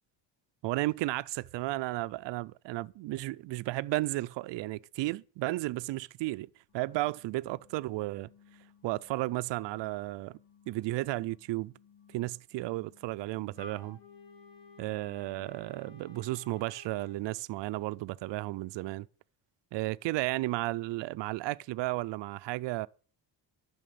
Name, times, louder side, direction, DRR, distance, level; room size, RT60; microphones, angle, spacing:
voice 1, 0.6-6.5 6.7-8.3 8.8-10.4 10.7-11.7 12.1-14.0 14.8-19.1 19.7-22.9, right 18 dB, 70° right, 0.5 m, -33 dB
sound 1, 6.7-16.4, left 8 dB, 90° left, 3.9 m, -62 dB
Wind instrument woodwind instrument, 13.6-17.2, left 3 dB, 65° left, 4.2 m, -53 dB
11.0 x 6.0 x 8.4 m
cardioid pair, 160°, 45 cm